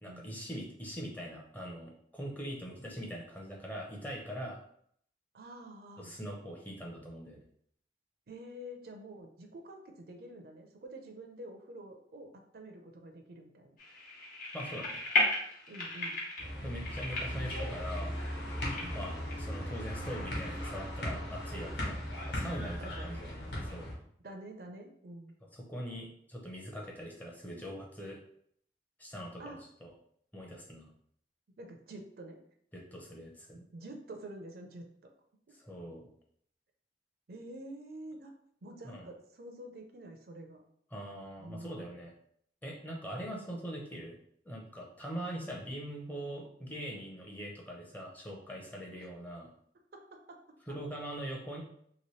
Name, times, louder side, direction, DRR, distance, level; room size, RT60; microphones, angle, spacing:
voice 1, 0.0-4.6 6.0-7.4 14.5-15.0 16.6-18.1 18.9-22.0 22.3-23.9 25.5-28.2 29.0-29.9 30.3-30.9 32.7-33.6 35.5-36.1 38.8-39.1 40.9-42.1 42.6-44.2 44.4-49.5 50.7-51.6, equal, 10° left, -1 dB, 0.6 m, -42 dB
voice 2, 5.3-6.1 8.3-13.8 15.7-16.2 18.8-19.0 22.8-23.3 24.2-25.3 29.4-29.6 31.6-32.4 33.7-34.8 37.3-38.3 38.6-40.6 41.4-42.0 49.0-49.1 49.9-50.4 50.7-50.8, right 1 dB, 60° right, 4 dB, 0.5 m, -48 dB
sound 1, 13.8-19.3, left 2 dB, 50° left, 1.0 m, -35 dB
sound 2, 16.4-23.9, equal, 75° left, 1.2 m, -38 dB
3.0 x 2.9 x 3.1 m, 0.66 s
head